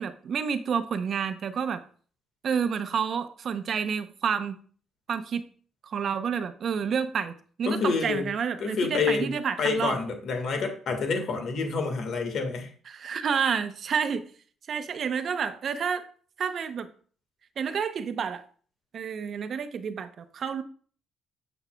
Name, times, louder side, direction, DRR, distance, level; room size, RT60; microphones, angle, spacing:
voice 1, 0.0-1.8 2.4-4.6 5.1-5.5 5.8-7.3 7.6-10.0 12.9-14.3 14.7-16.0 16.4-16.9 17.6-18.4 18.9-20.6, right 6 dB, 55° right, 10 dB, 0.7 m, -29 dB
voice 2, 7.6-8.3 8.6-9.3 9.6-12.7, left 4 dB, 65° left, 5 dB, 1.6 m, -28 dB
7.0 x 7.0 x 2.3 m, 0.43 s
cardioid pair, 90°, 0 cm